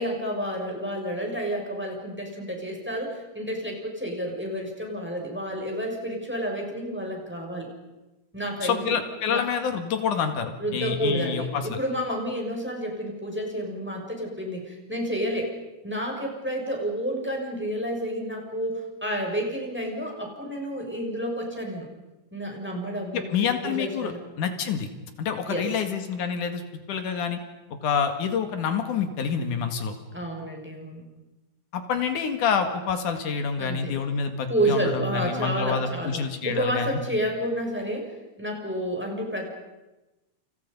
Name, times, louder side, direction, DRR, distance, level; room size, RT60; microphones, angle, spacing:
voice 1, 0.0-7.7 8.3-9.0 9.3-9.5 10.6-15.5 15.8-21.9 22.3-24.3 25.5-25.7 30.1-31.0 33.6-34.0 34.5-36.2 36.4-38.1 38.4-39.5, equal, 5° right, 0 dB, 6.2 m, -30 dB
voice 2, 8.6-11.8 23.1-24.1 24.4-24.9 25.2-26.6 26.9-27.4 27.8-29.9 31.7-37.0, left 6 dB, 85° left, 7 dB, 3.5 m, -27 dB
29.5 x 29.5 x 5.5 m, 1.0 s
omnidirectional pair, 3.5 m